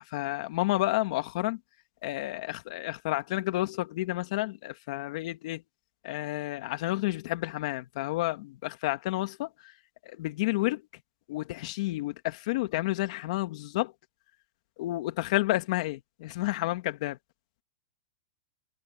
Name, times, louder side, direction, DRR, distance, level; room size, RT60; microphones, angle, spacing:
voice 1, 0.0-1.6 2.0-5.6 6.0-9.7 10.0-10.8 11.3-13.9 14.8-17.2, left 18 dB, 50° left, 2.3 m, -30 dB
supercardioid pair, 160°, 4 cm